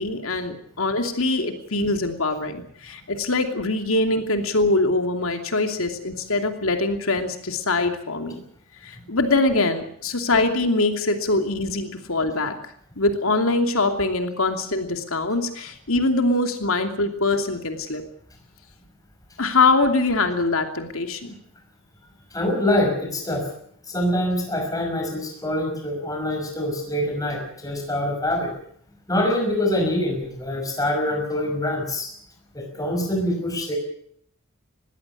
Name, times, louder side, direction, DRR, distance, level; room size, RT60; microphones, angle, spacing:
voice 1, 0.0-8.4 8.8-12.6 13.0-18.0 19.4-21.4, left 2 dB, 75° left, 6 dB, 2.8 m, -23 dB
voice 2, 22.3-23.5 23.9-28.5 29.1-32.1 32.5-33.8, left 1 dB, 15° left, 2 dB, 5.8 m, -25 dB
21.0 x 16.5 x 8.5 m, 0.65 s
head